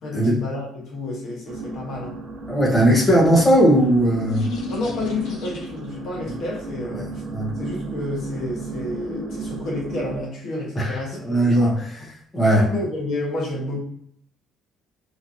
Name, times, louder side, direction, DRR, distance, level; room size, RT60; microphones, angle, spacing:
voice 1, 0.0-2.2 3.1-3.2 4.7-7.2 7.6-11.8 12.5-13.8, left 2 dB, 55° left, -2 dB, 1.0 m, -30 dB
sound 1, 1.5-10.2, right 3 dB, 60° right, 0.9 m, -35 dB
voice 2, 2.5-4.5 7.3-7.5 10.8-12.6, right 1 dB, 15° left, -4 dB, 0.7 m, -18 dB
sound 2, 3.1-6.0, left 4 dB, 90° left, 0.7 m, -34 dB
3.0 x 2.4 x 2.6 m, 0.67 s
cardioid pair, 150°, 0 cm